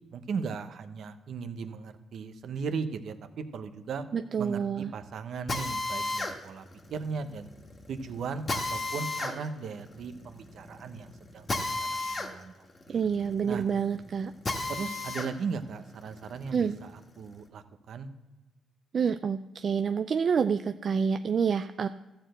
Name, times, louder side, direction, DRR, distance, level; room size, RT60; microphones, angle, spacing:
voice 1, 0.1-4.0 4.4-6.6 6.9-7.5 7.9-11.5 11.8-12.5 12.9-13.0 13.4-13.6 14.7-16.9 17.2-18.1, right 5 dB, 65° right, 9 dB, 0.9 m, -37 dB
voice 2, 4.1-4.9 12.9-14.3 16.5-16.8 18.9-21.9, right 6 dB, 50° right, 9 dB, 0.4 m, -28 dB
Drill, 5.5-15.3 15.8-17.4, left 2 dB, 30° left, 1.5 m, -35 dB
13.5 x 4.5 x 7.8 m, 1.1 s
cardioid pair, 90°, 0 cm